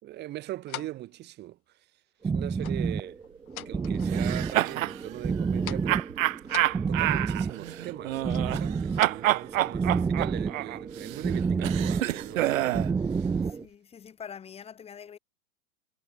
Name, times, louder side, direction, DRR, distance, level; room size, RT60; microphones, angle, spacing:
voice 1, 0.0-1.9 2.3-3.2 3.7-6.1 6.9-13.4, right 15 dB, 25° right, 3.5 m, -41 dB
sound 1, 0.7-1.1 2.6-2.9 3.2-4.2 4.5-5.2 5.5-6.0 6.4-7.3 8.3-9.1, left 11 dB, 75° left, 3.1 m, -43 dB
sound 2, 2.2-13.6, right 5 dB, 10° right, 1.6 m, -30 dB
sound 3, 4.1-5.0 5.9-8.7 9.0-12.9, right 15 dB, 65° right, 0.7 m, -28 dB
voice 2, 13.4-15.2, left 7 dB, 15° left, 4.8 m, -44 dB
hypercardioid pair, 155°, 43 cm